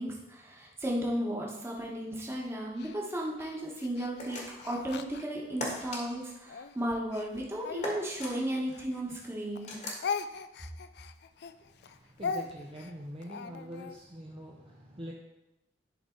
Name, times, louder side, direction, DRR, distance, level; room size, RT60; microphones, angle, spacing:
voice 1, 0.0-9.7, right 1 dB, 15° right, -3 dB, 1.4 m, -34 dB
Speech, 2.8-5.9 6.5-9.3 9.5-14.0, left 5 dB, 65° left, 0.4 m, -40 dB
sound 1, 4.2-4.7 5.6-6.0 7.8-8.3 9.7-10.1, left 2 dB, 40° left, 1.6 m, -37 dB
voice 2, 11.4-15.1, equal, 30° right, -3 dB, 0.9 m, -45 dB
11.0 x 4.0 x 3.9 m, 0.92 s
head